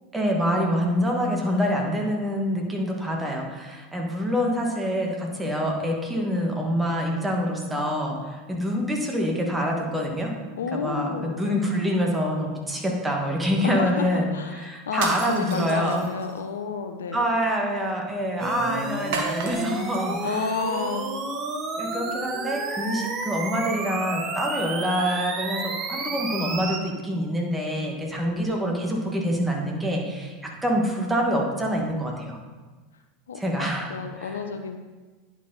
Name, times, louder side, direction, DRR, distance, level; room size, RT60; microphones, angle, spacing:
voice 1, 0.1-10.3 10.7-16.0 17.1-20.5 21.8-32.4 33.4-33.9 34.2-34.4, equal, 10° right, 0 dB, 1.7 m, -26 dB
voice 2, 10.6-11.8 13.6-17.3 20.2-21.2 33.3-34.8, left 5 dB, 75° left, 7 dB, 0.6 m, -31 dB
sound 1, 14.9-16.4 19.1-20.0, right 4 dB, 65° right, 1.1 m, -33 dB
sound 2, 18.4-26.8, right 3 dB, 35° right, 1.1 m, -31 dB
10.0 x 4.6 x 4.0 m, 1.3 s
figure-of-eight pair, 80°, 0 cm